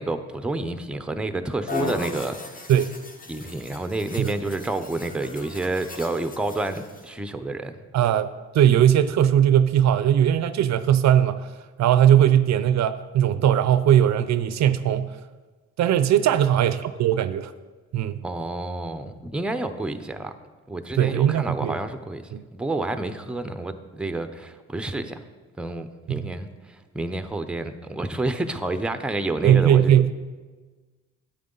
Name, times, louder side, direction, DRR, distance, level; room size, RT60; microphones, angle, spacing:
voice 1, 0.0-2.4 3.3-7.8 18.2-20.3 20.7-22.2 22.5-25.2 25.6-29.9, right 2 dB, 5° right, 9 dB, 0.6 m, -29 dB
sound 1, 1.7-7.1, left 3 dB, 30° left, 1.3 m, -37 dB
voice 2, 7.9-8.3 8.5-11.5 11.8-15.1 15.8-17.5 17.9-18.2 21.0-21.8 22.3-22.4 26.1-26.3 29.4-30.1, right 10 dB, 65° right, 13 dB, 0.5 m, -19 dB
9.5 x 8.8 x 3.9 m, 1.3 s
cardioid pair, 90°, 30 cm